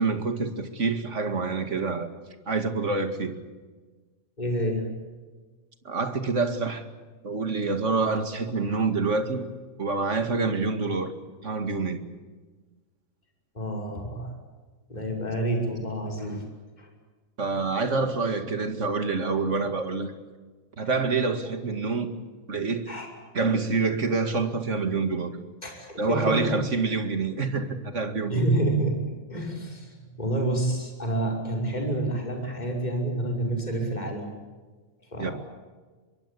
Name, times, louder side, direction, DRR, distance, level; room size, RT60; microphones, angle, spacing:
voice 1, 0.0-2.1 2.5-3.4 5.8-6.9 7.2-9.5 9.8-11.1 11.4-12.0 17.4-20.1 20.8-22.1 22.5-22.9 23.3-25.3 26.0-28.4 35.2-35.3, right 4 dB, 25° right, 8 dB, 2.0 m, -27 dB
voice 2, 4.4-4.8 13.5-14.3 14.9-16.4 16.8-16.9 22.9-23.1 25.6-26.6 28.3-28.9 29.3-34.3 35.1-35.3, right 1 dB, 15° left, 1 dB, 5.8 m, -28 dB
24.5 x 23.5 x 8.6 m, 1.3 s
omnidirectional pair, 3.4 m